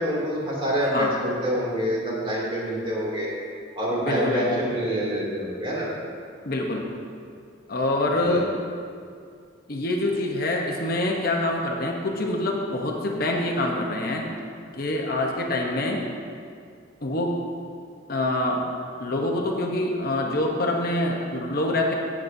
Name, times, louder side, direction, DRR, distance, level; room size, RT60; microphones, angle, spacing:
voice 1, 0.0-3.3 3.8-5.9 8.1-8.5, equal, 30° right, -6 dB, 2.6 m, -26 dB
voice 2, 4.0-4.6 6.4-6.9 7.7-8.5 9.7-14.3 14.7-16.0 17.0-17.4 18.1-18.6 19.0-21.9, left 1 dB, 55° left, 0 dB, 0.9 m, -25 dB
16.5 x 7.4 x 2.7 m, 2.3 s
head